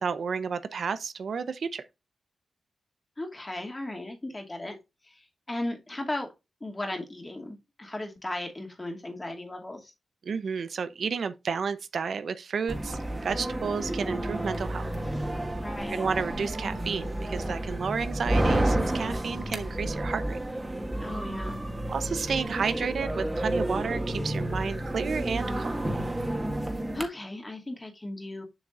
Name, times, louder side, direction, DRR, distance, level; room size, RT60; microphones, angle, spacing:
voice 1, 0.0-1.8 10.2-14.9 15.9-20.4 21.9-25.7, right 6 dB, 75° right, 0.7 m, -31 dB
voice 2, 3.2-4.8 5.0-6.3 6.6-9.9 15.6-16.0 21.0-21.6 26.9-28.4, left 1 dB, 25° left, 2.4 m, -36 dB
sound 1, 12.7-27.0, right 1 dB, 20° right, 1.8 m, -30 dB
7.3 x 6.2 x 2.5 m
cardioid pair, 70°, 0 cm